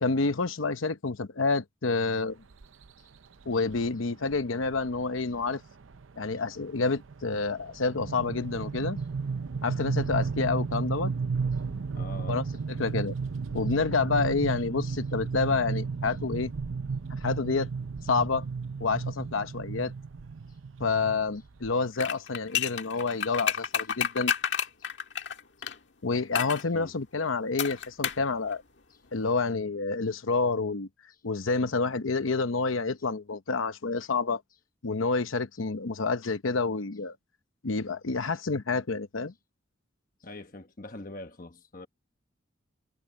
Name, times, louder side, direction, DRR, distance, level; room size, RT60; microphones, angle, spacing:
voice 1, 0.0-2.4 3.5-5.6 6.2-9.0 9.6-11.1 12.3-12.4 12.8-13.1 13.5-16.5 17.1-17.7 18.0-18.5 18.8-19.9 20.8-24.3 26.0-28.6 29.1-30.9 31.2-34.4 34.8-37.2 37.6-39.3, left 4 dB, 90° left, 0.9 m, -28 dB
sound 1, 2.6-2.9 3.7-3.9 4.2-4.4 4.6-5.0 5.3-21.7, right 5 dB, 80° right, 0.6 m, -33 dB
voice 2, 11.9-12.5 14.1-14.3 17.2-17.3 20.5-20.6 24.8-24.9 25.6-25.7 26.7-26.9 28.9-29.0 31.1-31.2 40.2-41.9, left 2 dB, 45° left, 1.2 m, -44 dB
sound 2, 22.0-25.8 26.3-26.6 27.6-28.3 28.5-28.6, left 8 dB, 65° left, 1.7 m, -30 dB
head